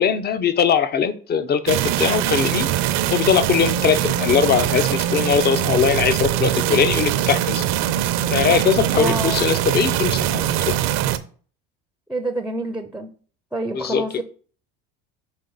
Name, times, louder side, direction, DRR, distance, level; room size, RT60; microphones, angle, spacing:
voice 1, 0.0-2.7 3.1-7.7 8.3-10.8 13.7-14.0, left 7 dB, 35° left, 0.7 m, -20 dB
sound 1, 1.7-11.2, right 11 dB, 65° right, 0.7 m, -22 dB
voice 2, 8.9-9.5 12.1-13.1 13.5-14.2, right 2 dB, 5° right, 0.6 m, -27 dB
6.3 x 3.8 x 3.9 m
supercardioid pair, 100°, 29 cm